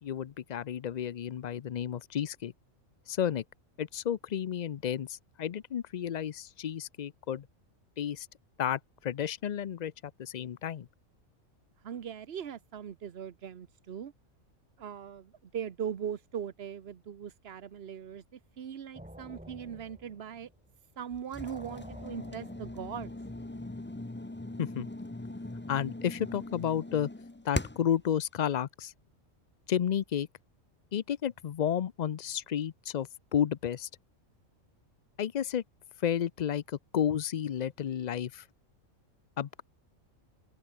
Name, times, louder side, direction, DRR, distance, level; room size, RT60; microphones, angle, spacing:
voice 1, 0.0-2.5 3.1-3.4 3.8-7.5 8.0-8.3 8.6-9.9 10.2-10.9 24.6-24.9 25.7-27.1 27.4-28.9 29.7-30.3 30.9-33.9 35.2-35.6 36.0-38.5 39.4-39.6, left 9 dB, 70° left, 0.4 m, -32 dB
voice 2, 11.8-14.1 14.8-20.5 21.0-23.1, right 8 dB, 50° right, 1.1 m, -40 dB
sound 1, 18.9-20.8 21.1-24.1, right 1 dB, 5° right, 2.2 m, -50 dB
sound 2, 21.3-28.0, left 2 dB, 10° left, 0.7 m, -40 dB
open air
omnidirectional pair, 1.4 m